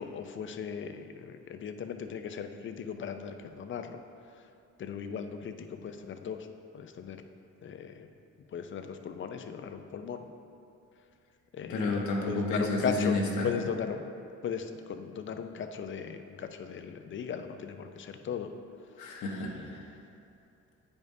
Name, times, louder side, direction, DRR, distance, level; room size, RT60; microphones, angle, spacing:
voice 1, 0.0-4.0 4.8-6.5 6.7-7.2 7.6-8.1 8.5-10.3 11.5-12.0 12.3-13.1 13.4-14.1 14.4-18.5, left 6 dB, 40° left, 7 dB, 0.5 m, -37 dB
voice 2, 11.7-13.5 19.0-19.8, left 3 dB, 75° left, -1 dB, 1.1 m, -30 dB
9.1 x 5.2 x 2.7 m, 2.6 s
cardioid pair, 90°, 30 cm